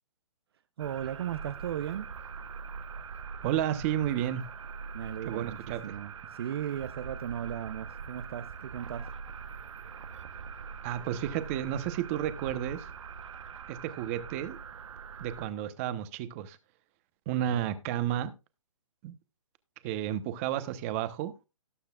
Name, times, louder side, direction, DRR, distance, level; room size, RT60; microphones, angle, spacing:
voice 1, 0.8-2.1 4.9-9.1 17.5-17.7, right 10 dB, 45° right, 0.6 m, -37 dB
sound 1, 0.8-15.5, right 6 dB, 65° right, 1.0 m, -43 dB
voice 2, 3.4-4.4 5.3-5.8 10.8-12.9 13.7-14.6 15.2-16.6 17.3-18.3 19.0-19.1 19.8-21.3, right 11 dB, 25° right, 1.0 m, -32 dB
18.0 x 6.5 x 2.4 m
hypercardioid pair, 160°, 17 cm